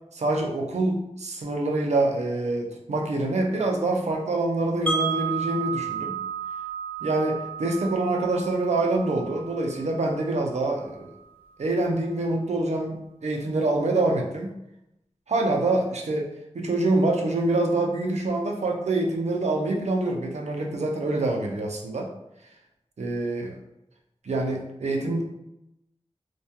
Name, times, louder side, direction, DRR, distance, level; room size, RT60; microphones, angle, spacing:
voice 1, 0.1-6.2 7.0-11.1 11.6-13.0 13.2-14.5 15.3-22.1 23.0-23.6 24.2-25.2, right 2 dB, 85° right, 1 dB, 0.4 m, -26 dB
Wind chime, 4.9-10.8, right 6 dB, 15° left, 0.7 m, -33 dB
2.2 x 2.2 x 2.8 m, 0.85 s
wide cardioid pair, 75°, 11 cm